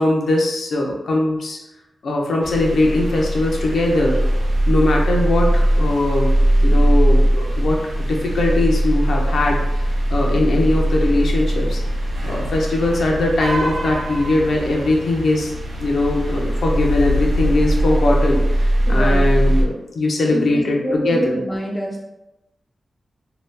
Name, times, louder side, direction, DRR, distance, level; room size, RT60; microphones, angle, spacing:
voice 1, 0.0-1.6 2.0-4.2 4.7-6.3 6.6-11.8 12.2-15.5 15.8-21.4, left 2 dB, 65° left, 0 dB, 0.6 m, -20 dB
sound 1, 2.4-19.6, right 1 dB, 65° right, 0.7 m, -20 dB
voice 2, 18.9-19.6 20.2-22.0, equal, 15° left, -2 dB, 0.4 m, -27 dB
2.8 x 2.3 x 3.3 m, 0.95 s
wide cardioid pair, 175°, 0 cm